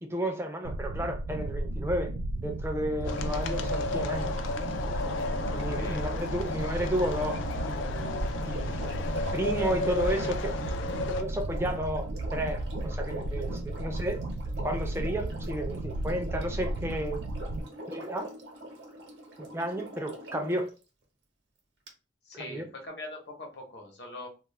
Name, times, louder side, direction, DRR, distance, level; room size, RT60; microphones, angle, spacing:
voice 1, 0.0-2.1 2.4-4.4 5.5-7.4 7.7-8.8 9.3-10.6 11.1-14.2 14.6-17.2 17.9-18.3 19.4-20.7 22.4-22.7, right 1 dB, 15° right, 0.4 m, -32 dB
sound 1, 0.6-17.6, right 1 dB, 85° right, 0.4 m, -34 dB
Sink (filling or washing), 2.9-20.7 21.9-22.0, right 1 dB, 65° right, 0.8 m, -45 dB
sound 2, 3.0-11.2, left 3 dB, 90° left, 0.3 m, -34 dB
voice 2, 5.7-6.9 22.2-24.3, left 2 dB, 65° left, 0.8 m, -43 dB
2.3 x 2.0 x 3.1 m
head